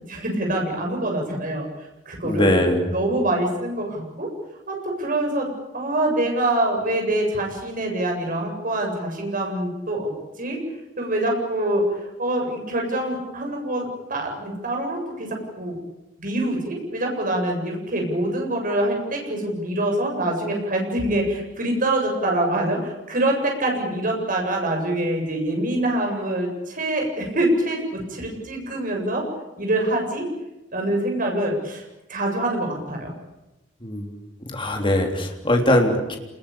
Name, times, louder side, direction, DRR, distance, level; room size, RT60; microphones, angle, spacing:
voice 1, 0.1-1.7 2.1-2.5 2.9-4.3 4.7-5.5 5.7-10.1 10.4-10.6 11.0-15.8 16.2-29.2 29.6-30.3 30.7-31.8 32.1-33.1, right 1 dB, 45° right, 1 dB, 7.8 m, -25 dB
voice 2, 2.2-2.9 33.8-34.2 34.5-36.2, left 1 dB, 25° left, 2 dB, 3.5 m, -21 dB
28.0 x 21.0 x 8.8 m, 0.95 s
head